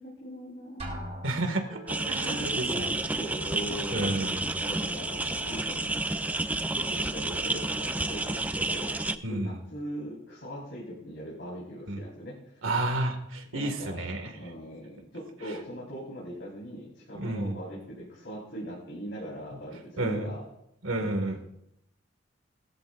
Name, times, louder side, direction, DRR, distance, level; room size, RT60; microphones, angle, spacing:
voice 1, 0.0-1.1 2.2-4.1 4.6-6.0 6.7-12.6 13.5-20.4 21.0-21.1, equal, 65° left, -7 dB, 4.7 m, -40 dB
Drum, 0.8-2.0, equal, 30° right, 3.7 m, -40 dB
voice 2, 1.2-2.9 3.9-4.4 9.2-9.6 11.9-12.0 12.6-14.3 17.1-17.6 20.0-20.3 20.8-21.4, right 2 dB, 90° right, 4 dB, 2.2 m, -31 dB
Wind instrument woodwind instrument, 1.7-6.1, equal, 65° right, 3.8 m, -49 dB
sound 1, 1.9-9.2, right 2 dB, 10° right, 0.3 m, -30 dB
20.0 x 13.5 x 2.6 m, 0.82 s
head